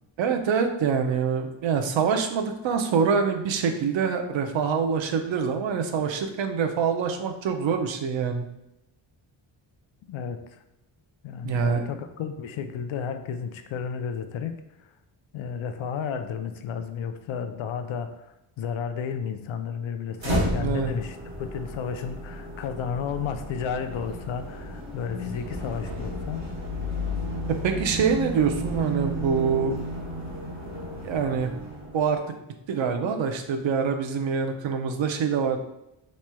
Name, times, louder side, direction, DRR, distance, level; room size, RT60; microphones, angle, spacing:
voice 1, 0.2-8.5 11.4-11.9 20.6-20.9 27.5-29.8 31.0-31.5 31.9-32.2 32.7-35.6, right 6 dB, 70° right, 5 dB, 0.6 m, -25 dB
voice 2, 10.1-10.6 11.2-14.6 14.8-14.9 15.3-26.5, left 7 dB, 75° left, 8 dB, 0.5 m, -32 dB
sound 1, 20.2-32.2, equal, 35° right, 1.0 m, -33 dB
4.3 x 3.1 x 2.2 m, 0.89 s
wide cardioid pair, 110°, 48 cm